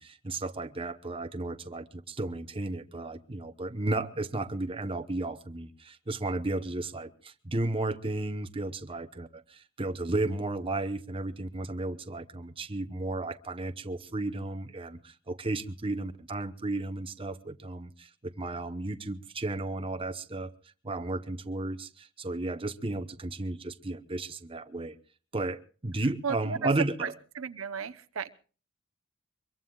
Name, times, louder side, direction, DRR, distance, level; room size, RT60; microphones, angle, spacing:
voice 1, 0.0-20.5 20.8-24.9 25.3-27.1, right 2 dB, 25° right, 0.9 m, -34 dB
voice 2, 26.2-26.7 27.0-28.3, right 6 dB, 90° right, 0.8 m, -35 dB
24.0 x 22.5 x 2.3 m
head